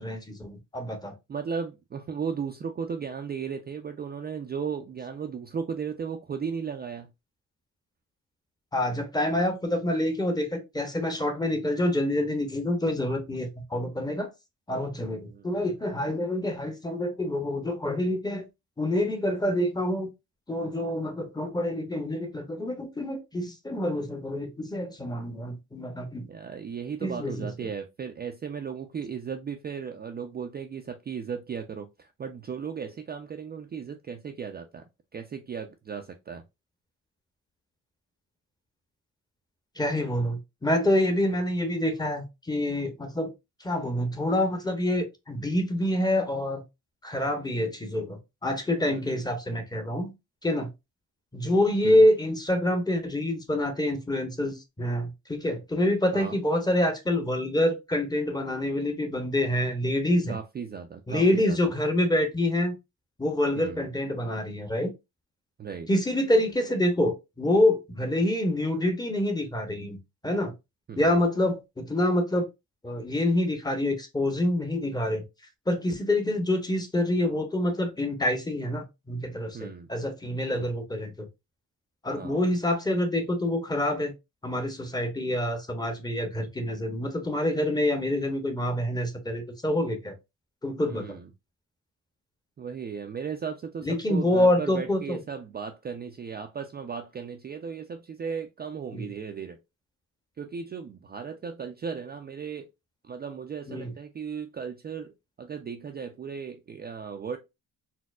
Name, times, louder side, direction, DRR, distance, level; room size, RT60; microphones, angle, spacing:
voice 1, 0.0-1.1 8.7-14.3 14.7-18.5 18.8-20.1 20.5-26.3 27.0-27.5 39.8-43.3 43.6-46.6 47.0-50.1 50.4-50.7 51.3-60.4 61.1-62.7 63.2-64.9 65.9-70.0 70.2-70.5 71.0-72.5 72.8-75.2 75.7-81.3 82.0-84.1 84.4-90.1 90.6-91.2 93.8-95.2 98.9-99.1 103.7-103.9, left 1 dB, 10° left, 0.7 m, -27 dB
voice 2, 1.3-7.1 15.2-15.6 26.3-34.9 35.1-36.4 48.9-49.2 51.8-52.0 56.1-56.4 60.3-61.6 63.6-63.9 65.6-65.9 70.9-71.2 79.5-79.9 80.5-80.7 82.1-82.4 90.9-91.3 92.6-99.6 100.4-102.7 103.0-107.4, right 6 dB, 30° right, 0.4 m, -36 dB
4.2 x 2.0 x 2.3 m
cardioid pair, 95°, 34 cm